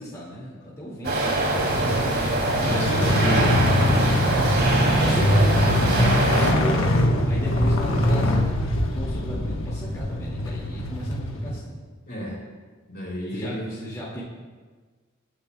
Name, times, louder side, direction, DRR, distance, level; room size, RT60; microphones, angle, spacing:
voice 1, 0.0-3.1 3.5-4.1 4.4-11.8 13.3-14.2, equal, 15° left, -7 dB, 2.1 m, -36 dB
sound 1, 1.0-6.5, right 2 dB, 55° right, 2.7 m, -24 dB
sound 2, 1.6-11.6, left 1 dB, 70° left, 1.2 m, -23 dB
voice 2, 2.6-3.5 12.1-12.4 12.9-13.6, equal, 50° left, -4 dB, 4.0 m, -31 dB
22.5 x 9.6 x 2.3 m, 1.4 s
head